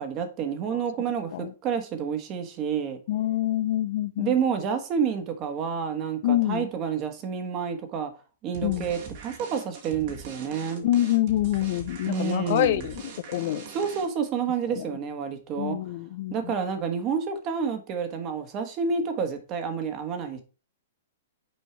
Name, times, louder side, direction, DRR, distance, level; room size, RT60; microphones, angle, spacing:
voice 1, 0.0-3.0 4.2-8.1 8.4-10.9 12.1-12.9 13.7-15.8 16.3-20.4, right 6 dB, 35° right, 1.5 m, -29 dB
voice 2, 3.1-4.3 6.2-6.7 8.6-8.9 10.8-13.0 13.3-13.7 14.7-14.9 15.6-16.5, left 14 dB, 55° left, 0.6 m, -26 dB
sound 1, 8.5-14.3, right 5 dB, 55° right, 1.9 m, -42 dB
6.4 x 4.6 x 4.5 m
hypercardioid pair, 130°, 0 cm